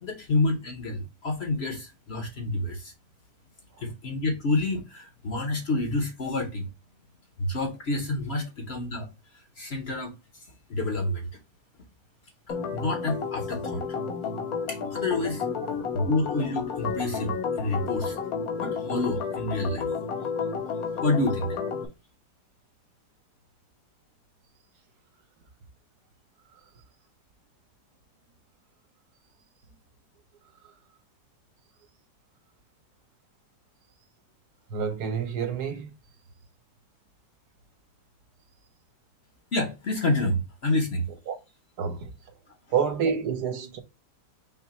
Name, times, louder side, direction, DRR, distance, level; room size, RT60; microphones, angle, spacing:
voice 1, 0.0-2.9 3.8-6.7 7.4-9.1 9.3-11.3 12.5-13.8 14.7-15.4 15.9-18.2 18.6-19.9 21.0-21.6 39.5-41.1, left 2 dB, 50° left, 0.9 m, -28 dB
Organ, 12.5-21.9, left 6 dB, 65° left, 1.2 m, -31 dB
voice 2, 34.7-35.9 41.3-41.4 41.8-42.1 42.7-43.8, right 6 dB, 75° right, 1.4 m, -28 dB
5.7 x 2.1 x 4.1 m
omnidirectional pair, 1.8 m